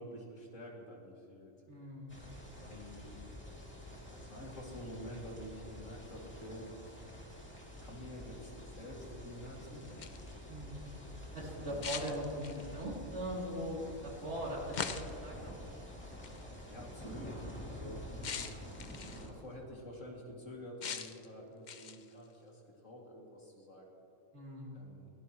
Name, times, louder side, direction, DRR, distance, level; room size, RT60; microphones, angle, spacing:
voice 1, 0.0-1.6 2.6-3.2 4.1-6.7 7.8-10.2 11.6-11.9 16.7-18.2 19.0-24.0 24.7-25.1, left 1 dB, 65° left, -2 dB, 2.6 m, -48 dB
voice 2, 1.7-2.3 10.5-10.9 11.3-15.5 17.8-18.1 24.3-24.9, equal, 55° right, -3 dB, 3.1 m, -41 dB
sound 1, 2.1-19.3, equal, 10° left, 2.5 m, -48 dB
sound 2, 9.8-10.3 11.8-12.8 14.7-15.3 16.2-16.4 18.2-19.3 20.8-21.3 21.7-22.1, left 6 dB, 50° left, 0.6 m, -41 dB
22.0 x 16.5 x 3.0 m, 2.9 s
omnidirectional pair, 1.4 m